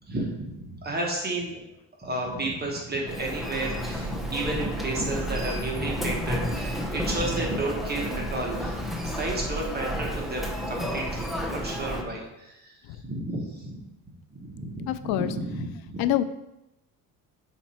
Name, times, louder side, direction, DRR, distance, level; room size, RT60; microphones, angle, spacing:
voice 1, 0.0-1.6 2.0-13.8 14.3-16.1, right 2 dB, 25° right, -1 dB, 1.2 m, -32 dB
Human voice, 3.1-12.0, equal, ahead, 0.7 m, -31 dB
voice 2, 14.9-15.3 16.0-16.2, left 12 dB, 75° left, 12 dB, 0.5 m, -25 dB
5.8 x 4.4 x 4.3 m, 0.92 s
cardioid pair, 125°, 36 cm